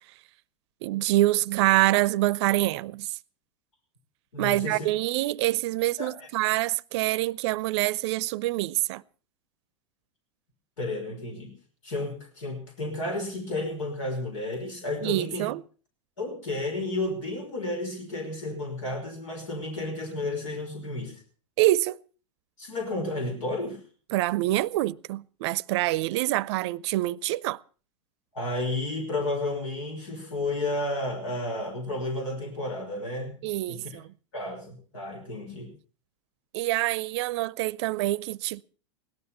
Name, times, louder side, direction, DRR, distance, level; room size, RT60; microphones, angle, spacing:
voice 1, 0.8-3.2 4.4-9.0 15.0-15.6 21.6-22.0 24.1-27.6 33.4-34.1 36.5-38.6, right 17 dB, 60° right, 0.6 m, -26 dB
voice 2, 4.3-4.9 6.0-6.3 10.8-11.5 11.8-15.5 16.2-21.2 22.6-23.8 28.3-33.4 33.7-33.9 34.3-35.7, left 2 dB, 80° left, 5.3 m, -32 dB
17.5 x 12.5 x 5.6 m
hypercardioid pair, 105°, 16 cm